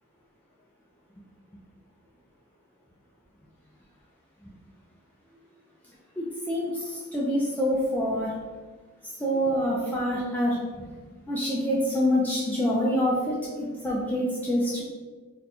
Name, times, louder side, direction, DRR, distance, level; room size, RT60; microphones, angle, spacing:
voice 1, 6.2-8.4 9.0-10.9 11.3-14.8, equal, 10° left, -6 dB, 0.4 m, -26 dB
2.8 x 2.2 x 4.1 m, 1.4 s
head